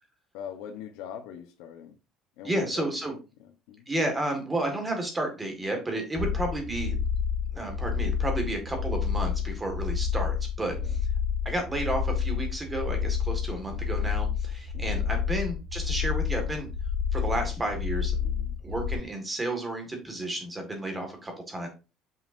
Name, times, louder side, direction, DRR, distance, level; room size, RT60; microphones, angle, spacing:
voice 1, 0.3-2.0 2.4-3.9 6.2-6.5 10.6-10.9 14.7-15.1 18.2-18.6, left 9 dB, 85° left, 0.9 m, -43 dB
voice 2, 2.4-3.1 3.9-7.0 7.5-11.0 11.5-16.7 17.1-18.2 18.6-21.7, right 1 dB, 10° right, 1.7 m, -32 dB
sound 1, 6.2-18.9, left 7 dB, 30° right, 1.7 m, -29 dB
7.7 x 5.7 x 2.6 m
cardioid pair, 170°, 0 cm